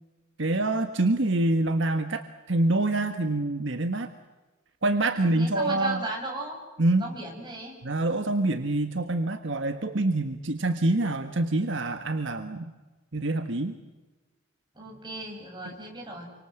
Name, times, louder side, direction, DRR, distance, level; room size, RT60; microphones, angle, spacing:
voice 1, 0.4-4.1 4.8-6.0 6.8-7.1 7.8-12.7 13.1-13.7 15.6-15.7, right 2 dB, 65° right, 7 dB, 1.5 m, -26 dB
voice 2, 5.2-6.6 7.0-7.7 14.8-16.3, right 2 dB, 20° right, 0 dB, 7.7 m, -36 dB
28.5 x 25.0 x 7.9 m, 1.2 s
head